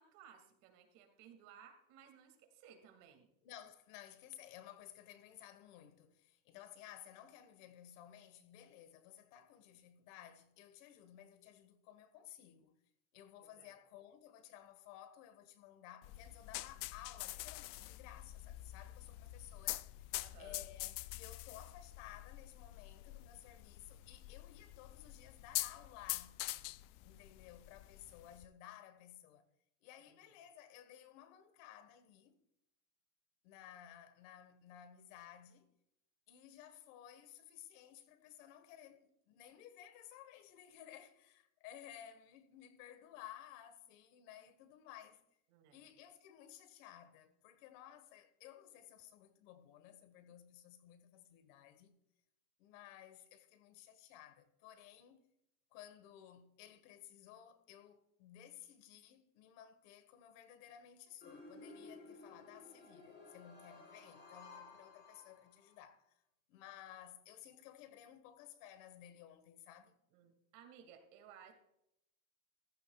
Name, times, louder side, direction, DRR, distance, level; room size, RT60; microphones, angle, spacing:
voice 1, 0.0-3.3 13.4-13.8 20.1-20.6 30.1-30.2 45.5-45.9 70.1-71.5, right 8 dB, 75° right, 2.4 m, -60 dB
voice 2, 3.4-12.7 13.1-19.9 20.4-26.4 27.0-29.4 29.8-32.4 33.4-35.7 36.3-45.2 45.7-51.9 52.6-55.2 55.7-66.0 66.5-70.0, left 11 dB, 85° left, 1.5 m, -56 dB
sound 1, 16.0-28.4, left 18 dB, 65° left, 0.5 m, -45 dB
sound 2, 61.2-65.8, left 3 dB, 25° left, 4.5 m, -56 dB
14.5 x 14.5 x 2.4 m
cardioid pair, 150°, 37 cm